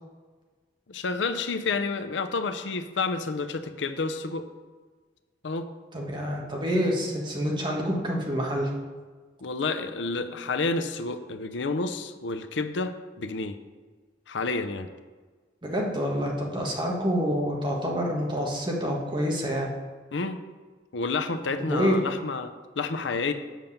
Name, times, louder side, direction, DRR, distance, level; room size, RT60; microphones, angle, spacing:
voice 1, 0.9-4.4 5.4-5.7 9.4-13.6 14.3-14.9 20.1-20.4 20.9-23.3, left 3 dB, 85° left, 9 dB, 0.6 m, -30 dB
voice 2, 5.9-8.7 15.6-19.7 21.6-22.0, equal, 25° right, -1 dB, 1.4 m, -27 dB
7.5 x 5.2 x 7.0 m, 1.4 s
head